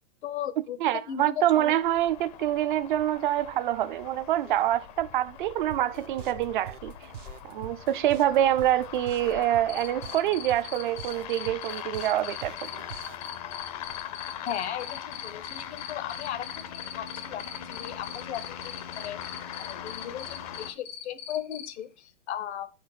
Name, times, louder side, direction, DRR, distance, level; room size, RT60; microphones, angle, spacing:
voice 1, 0.2-0.8 1.1-1.7 14.4-22.7, left 10 dB, 65° left, 0.9 m, -37 dB
voice 2, 0.8-6.9 7.4-12.8, right 12 dB, 45° right, 0.4 m, -26 dB
sound 1, 1.5-20.7, left 9 dB, 30° left, 0.6 m, -41 dB
sound 2, 5.7-13.3, right 10 dB, 80° right, 0.8 m, -44 dB
Cricket, 9.7-21.7, left 11 dB, 80° left, 2.2 m, -40 dB
5.6 x 5.1 x 6.2 m
hypercardioid pair, 145°, 37 cm